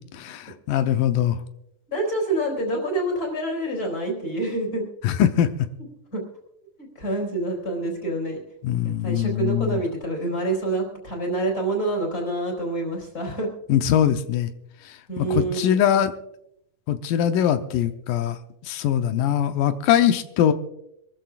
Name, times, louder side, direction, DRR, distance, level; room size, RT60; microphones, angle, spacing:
voice 1, 0.1-1.4 5.0-5.5 8.6-9.8 13.7-14.5 15.2-16.1 16.9-18.4 18.7-20.5, left 10 dB, 80° left, 8 dB, 2.4 m, -22 dB
voice 2, 1.9-4.9 6.1-6.2 6.8-8.4 8.8-13.5 15.1-15.8, right 2 dB, 25° left, 0 dB, 4.6 m, -27 dB
26.0 x 13.5 x 2.4 m, 0.81 s
omnidirectional pair, 3.9 m